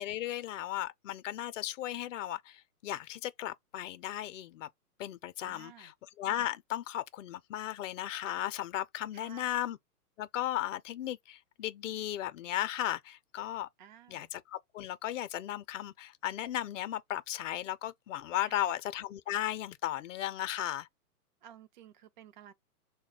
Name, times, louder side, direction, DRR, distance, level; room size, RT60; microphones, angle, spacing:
voice 1, 0.0-4.7 5.0-5.9 6.2-9.8 10.2-13.7 14.1-20.9, left 13 dB, 55° left, 0.6 m, -36 dB
voice 2, 5.4-5.9 9.1-9.6 13.8-14.3 18.4-18.8 21.4-22.5, right 9 dB, 35° right, 0.4 m, -54 dB
3.2 x 2.2 x 3.9 m
hypercardioid pair, 135°, 45 cm